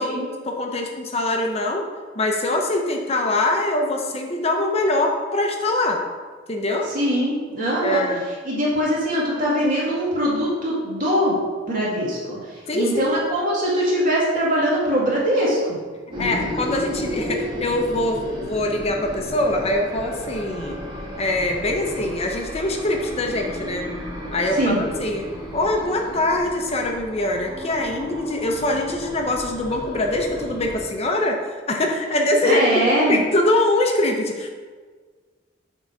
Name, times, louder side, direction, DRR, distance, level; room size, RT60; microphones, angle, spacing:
voice 1, 0.0-1.8 2.2-6.0 6.5-6.9 7.8-8.2 12.7-13.1 16.2-20.8 21.2-23.9 24.3-25.2 25.5-32.8 33.1-34.5, left 1 dB, 30° left, 2 dB, 0.6 m, -23 dB
voice 2, 6.9-8.0 8.5-11.4 11.7-12.4 12.7-15.8 16.1-16.5 24.5-24.8 32.4-33.2, equal, 45° right, -5 dB, 2.0 m, -22 dB
sound 1, 16.1-30.8, left 1 dB, 25° right, 1.4 m, -33 dB
7.2 x 3.9 x 4.5 m, 1.5 s
head